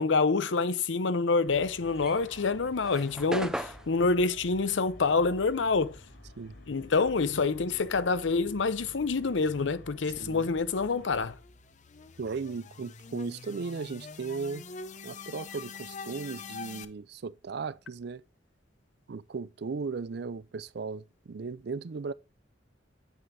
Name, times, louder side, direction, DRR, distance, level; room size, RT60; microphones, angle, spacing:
voice 1, 0.0-6.0 6.7-11.4, left 4 dB, 85° left, 0.7 m, -27 dB
sound 1, 1.4-11.4, left 1 dB, 65° left, 3.1 m, -50 dB
sound 2, 1.9-6.6 6.9-8.9, equal, 5° right, 0.5 m, -40 dB
voice 2, 10.2-10.5 12.2-14.7 15.0-18.2 19.1-22.1, right 4 dB, 60° right, 0.4 m, -36 dB
sound 3, 10.5-16.9, left 5 dB, 40° left, 0.6 m, -45 dB
9.3 x 7.9 x 2.7 m
head